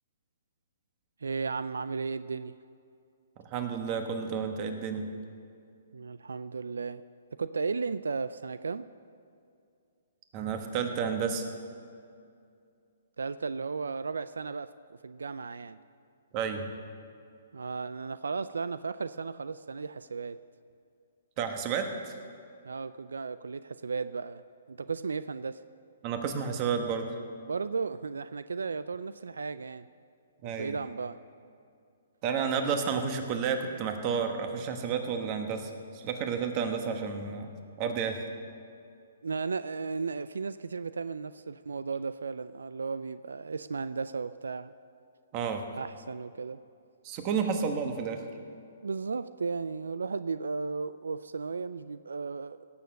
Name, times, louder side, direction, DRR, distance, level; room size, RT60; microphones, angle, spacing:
voice 1, 1.2-2.5 5.9-7.0 7.4-8.9 13.2-15.8 17.5-20.4 22.7-24.4 24.7-25.6 27.4-29.9 30.6-31.2 39.2-44.7 45.8-46.6 48.8-52.6, right 4 dB, 90° right, 14 dB, 0.3 m, -35 dB
voice 2, 3.5-5.0 10.3-11.4 16.3-16.7 21.4-22.1 26.0-27.1 30.4-30.8 32.2-37.5 37.8-38.2 45.3-45.7 47.0-48.2, right 6 dB, 35° right, 6 dB, 1.2 m, -31 dB
17.0 x 6.9 x 6.5 m, 2.4 s
hypercardioid pair, 145°, 0 cm